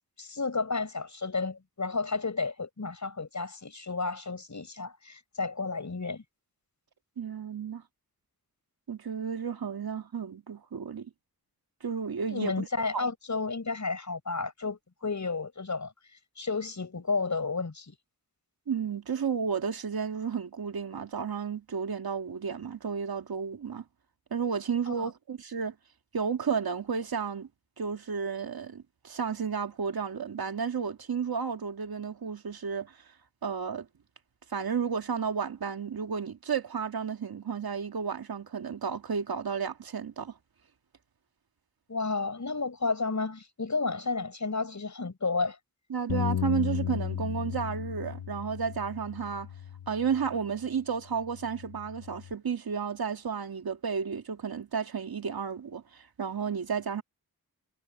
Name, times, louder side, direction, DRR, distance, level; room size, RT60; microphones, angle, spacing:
voice 1, 0.2-6.2 12.3-15.9 16.4-17.9 24.9-25.1 41.9-45.6, left 4 dB, 50° left, 6.4 m, -32 dB
voice 2, 7.2-7.8 8.9-11.1 11.8-12.7 12.9-13.1 18.7-23.8 24.3-25.8 26.1-27.5 27.8-33.0 33.4-33.9 34.5-40.3 45.9-49.5 49.9-57.0, right 6 dB, 75° right, 1.9 m, -32 dB
Bass guitar, 46.1-50.6 51.2-52.3, left 9 dB, 75° left, 0.9 m, -35 dB
wide cardioid pair, 65°, 37 cm